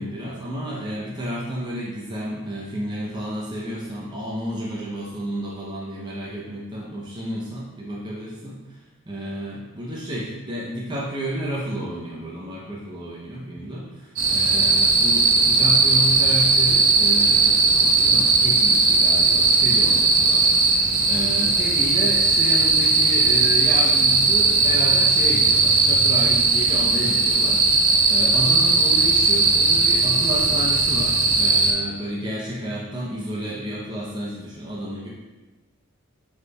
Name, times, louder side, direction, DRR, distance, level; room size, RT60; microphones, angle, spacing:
voice 1, 0.0-8.6 9.1-20.6 21.1-35.1, right 1 dB, 20° right, -5 dB, 0.5 m, -31 dB
sound 1, 14.2-31.7, right 3 dB, 65° right, 0.8 m, -18 dB
6.3 x 3.3 x 2.2 m, 1.2 s
head